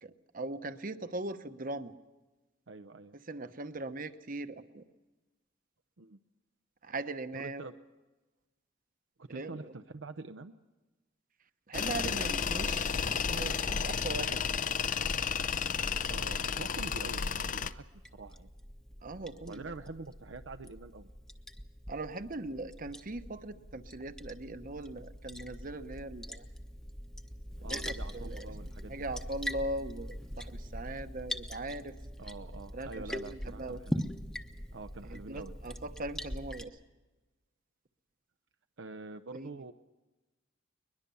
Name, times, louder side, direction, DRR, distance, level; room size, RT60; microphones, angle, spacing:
voice 1, 0.0-1.9 3.3-4.8 6.8-7.7 9.3-9.7 11.7-14.4 19.0-19.7 21.9-26.4 27.6-28.4 28.9-31.9 32.7-33.8 35.1-36.7 39.3-39.5, right 2 dB, 45° right, 10 dB, 1.0 m, -40 dB
voice 2, 2.7-3.2 6.0-6.2 7.3-7.7 9.2-10.5 16.1-17.9 18.1-18.5 19.5-21.1 27.6-28.9 32.2-34.0 34.7-35.5 38.8-39.7, right 3 dB, 65° right, 7 dB, 0.7 m, -46 dB
Tools, 11.7-17.7, left 6 dB, 40° left, 0.6 m, -32 dB
Liquid, 17.7-36.6, equal, 5° left, 0.9 m, -42 dB
22.0 x 21.5 x 7.0 m, 1.2 s
head